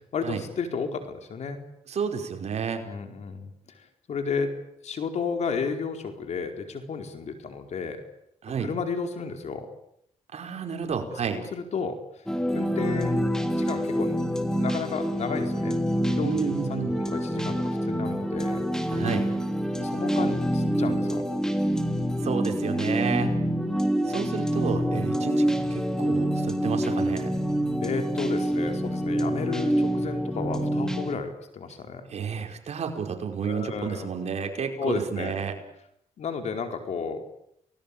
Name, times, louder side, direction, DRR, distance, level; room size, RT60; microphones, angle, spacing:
voice 1, 0.1-1.6 2.8-3.5 3.7-4.5 4.8-8.0 8.6-9.7 11.5-12.0 12.5-13.3 13.6-14.2 14.6-15.8 16.1-18.6 19.8-21.2 23.4-23.6 27.8-32.1 33.4-34.1 34.8-35.3 36.2-37.2, left 5 dB, 65° left, 6 dB, 4.5 m, -32 dB
voice 2, 1.9-2.8 8.4-8.7 10.3-11.4 16.2-17.0 18.9-19.3 22.2-23.3 24.1-27.3 32.1-35.5, right 6 dB, 65° right, 4 dB, 5.2 m, -30 dB
sound 1, 12.3-31.1, equal, 5° left, 3.2 m, -26 dB
29.5 x 20.0 x 8.7 m, 0.75 s
cardioid pair, 85°, 12 cm